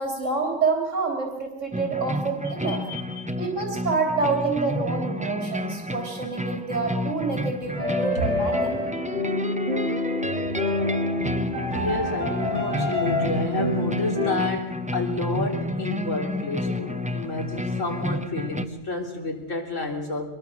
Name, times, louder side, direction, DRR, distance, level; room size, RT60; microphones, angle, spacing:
voice 1, 0.0-2.8 3.4-8.7, right 4 dB, 80° right, 2 dB, 3.5 m, -27 dB
sound 1, 1.7-18.7, left 1 dB, 10° right, 0.6 m, -31 dB
voice 2, 2.7-3.3 8.1-8.3 11.7-20.3, left 2 dB, 85° left, 1 dB, 3.9 m, -30 dB
sound 2, 7.7-14.3, left 1 dB, 40° right, 6.3 m, -27 dB
24.0 x 21.5 x 6.3 m, 0.99 s
omnidirectional pair, 1.3 m